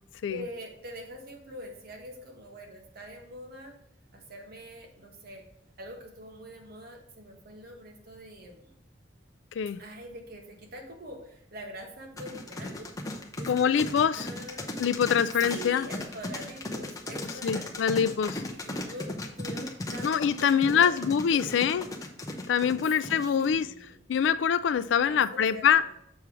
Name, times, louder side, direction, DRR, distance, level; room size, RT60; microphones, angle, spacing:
voice 1, 0.3-3.7 4.1-5.4 5.8-8.7 9.8-12.9 13.3-14.7 15.4-18.1 18.5-21.0 21.3-21.7 22.8-24.0 25.1-25.9, equal, 55° right, 1.3 m, -44 dB
sound 1, 12.2-23.6, left 2 dB, 20° left, 0.8 m, -36 dB
voice 2, 13.5-14.3 14.8-15.9 17.4-18.4 20.0-21.8 22.5-23.7 24.1-25.8, left 7 dB, 75° left, 0.3 m, -24 dB
7.0 x 3.2 x 6.1 m
head